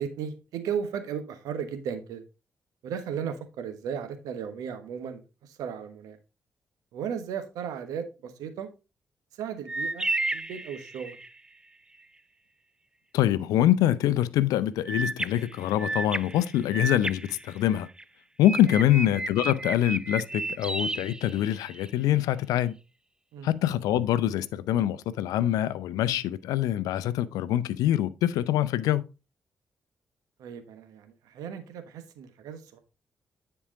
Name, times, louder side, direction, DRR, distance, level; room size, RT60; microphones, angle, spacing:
voice 1, 0.0-2.2 2.8-6.2 6.9-8.7 9.3-11.2 18.7-18.9 23.3-23.5 30.4-32.8, right 7 dB, 80° right, 1.2 m, -35 dB
sound 1, 9.7-11.4 14.9-18.0 18.4-21.9, right 2 dB, 15° right, 0.4 m, -33 dB
voice 2, 13.1-17.9 18.4-22.8 23.4-29.1, left 12 dB, 80° left, 0.5 m, -25 dB
9.9 x 4.7 x 3.8 m
hypercardioid pair, 40°, 6 cm